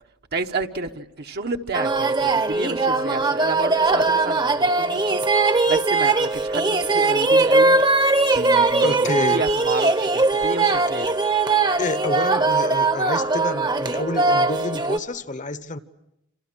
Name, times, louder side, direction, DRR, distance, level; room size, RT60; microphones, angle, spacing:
voice 1, 0.3-5.2 5.5-7.8 8.3-11.1, right 3 dB, 55° right, 1.1 m, -30 dB
sound 1, 1.7-15.0, right 3 dB, 20° right, 1.0 m, -20 dB
voice 2, 8.8-9.4 11.0-11.1 11.8-15.8, left 2 dB, 40° left, 1.1 m, -28 dB
28.0 x 27.0 x 6.2 m
head